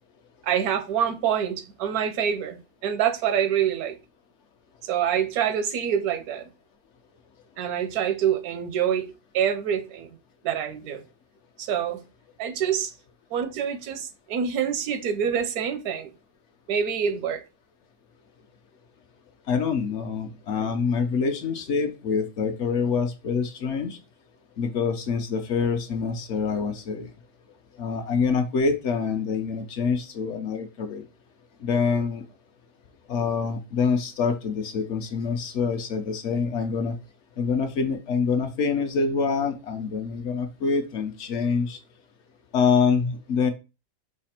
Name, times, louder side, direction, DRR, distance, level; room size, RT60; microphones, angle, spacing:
voice 1, 0.4-4.0 4.8-6.5 7.6-10.2 10.4-11.0 11.6-12.0 12.4-12.9 13.3-16.1 16.7-17.4, right 8 dB, 85° right, 1.2 m, -26 dB
voice 2, 19.5-24.0 24.6-27.1 27.8-31.0 31.6-32.2 33.1-37.0 37.4-41.8 42.5-43.5, left 5 dB, 65° left, 0.8 m, -26 dB
4.9 x 2.4 x 4.2 m
omnidirectional pair, 1.5 m